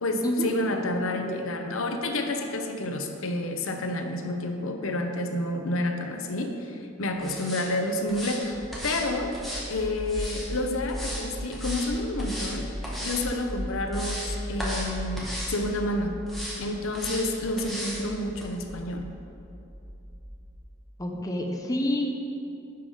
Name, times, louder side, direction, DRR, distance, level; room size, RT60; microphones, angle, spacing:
voice 1, 0.0-9.3 9.7-12.7 13.0-16.2 16.6-19.1, left 1 dB, 90° left, 5 dB, 0.8 m, -29 dB
sound 1, 7.2-7.7 8.1-8.4 8.7-9.0 9.3-10.5 10.9-11.2 11.5-11.9 12.2-12.5 12.8-13.2 13.6-14.3 14.6-14.9 15.2-15.6 16.3-16.6 16.9-17.2 17.6-18.0 18.4-18.5, equal, ahead, 1.5 m, -36 dB
sound 2, 8.4-20.6, equal, 25° right, 1.6 m, -38 dB
voice 2, 21.0-22.0, left 1 dB, 15° left, 1 dB, 0.7 m, -27 dB
10.5 x 5.6 x 5.0 m, 2.7 s
head